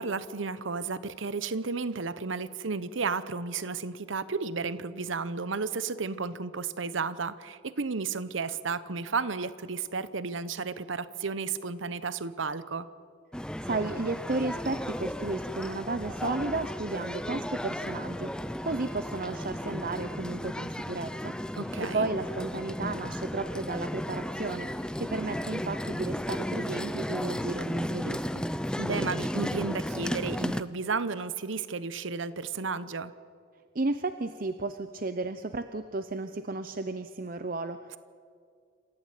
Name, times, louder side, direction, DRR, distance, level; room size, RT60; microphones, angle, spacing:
voice 1, 0.0-12.9 21.6-22.1 28.8-33.1, right 4 dB, 75° right, 15 dB, 0.9 m, -33 dB
sound 1, 13.3-30.6, equal, 5° left, 0.5 m, -34 dB
voice 2, 13.6-21.3 21.8-28.4 33.7-38.0, right 3 dB, 45° right, 10 dB, 0.7 m, -33 dB
27.0 x 15.5 x 9.1 m, 2.2 s
head